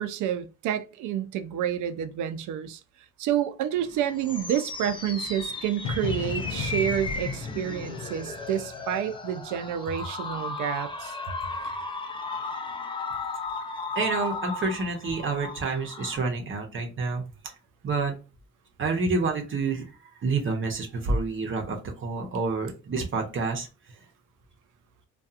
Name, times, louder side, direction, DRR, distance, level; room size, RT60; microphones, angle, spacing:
voice 1, 0.0-2.8 3.2-11.1, right 10 dB, 80° right, 0.4 m, -29 dB
sound 1, 3.8-16.2, left 3 dB, 15° left, 0.5 m, -35 dB
sound 2, 5.8-9.7, left 6 dB, 85° left, 0.6 m, -35 dB
voice 2, 14.0-17.2 17.8-18.1 18.8-19.8 20.2-23.7, right 3 dB, 40° right, 0.7 m, -28 dB
2.7 x 2.3 x 2.4 m
cardioid pair, 90°, 30 cm